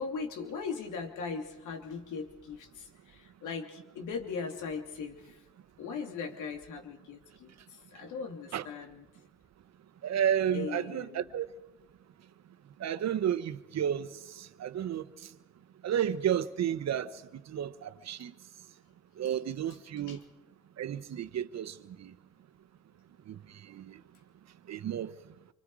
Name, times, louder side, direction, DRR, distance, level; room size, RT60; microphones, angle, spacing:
voice 1, 0.0-5.4 5.8-9.0 10.5-11.3 20.1-20.2, left 5 dB, 85° left, 3.1 m, -39 dB
voice 2, 10.0-11.5 12.8-15.0 15.8-17.1 17.5-18.3 19.2-20.2 20.8-22.1 23.3-24.0 24.7-25.1, right 9 dB, 60° right, 1.2 m, -32 dB
26.5 x 25.0 x 4.9 m
cardioid pair, 90°, 30 cm